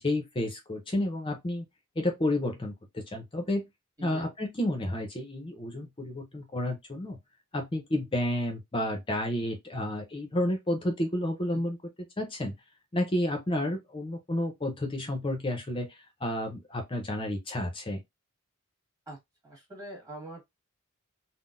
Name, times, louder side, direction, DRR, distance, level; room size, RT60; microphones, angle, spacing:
voice 1, 0.0-1.7 2.0-3.7 4.0-7.2 7.5-11.8 12.2-12.6 12.9-18.0, left 1 dB, 25° left, 0.6 m, -31 dB
voice 2, 4.0-4.3 11.5-11.6 19.1-19.2 19.4-20.6, right 1 dB, 15° right, 1.6 m, -44 dB
3.8 x 2.1 x 2.5 m
head